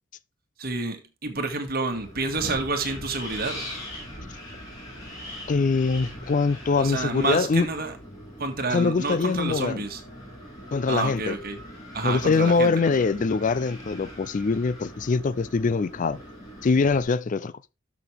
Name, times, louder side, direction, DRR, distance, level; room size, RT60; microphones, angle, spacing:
voice 1, 0.6-3.6 6.8-7.9 8.4-10.0 10.9-11.6 11.9-13.1, right 3 dB, 50° right, 2.0 m, -29 dB
Wind, 1.9-17.0, equal, 20° left, 5.2 m, -41 dB
voice 2, 5.5-7.7 8.7-9.8 10.7-11.4 12.0-16.2 16.6-17.5, left 4 dB, 40° left, 0.4 m, -23 dB
12.5 x 6.2 x 3.5 m
head